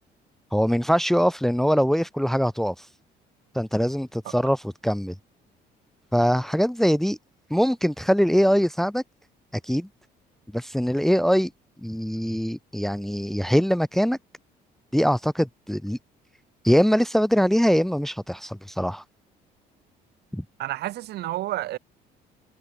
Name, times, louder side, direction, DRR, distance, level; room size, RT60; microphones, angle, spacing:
voice 1, 0.5-2.8 3.5-5.1 6.1-7.2 7.5-9.0 9.6-9.9 10.5-11.5 11.8-14.2 14.9-16.0 16.6-19.0 20.3-20.4, equal, ahead, 1.0 m, -22 dB
voice 2, 20.6-21.8, right 15 dB, 75° right, 2.9 m, -30 dB
cardioid pair, 110°, 17 cm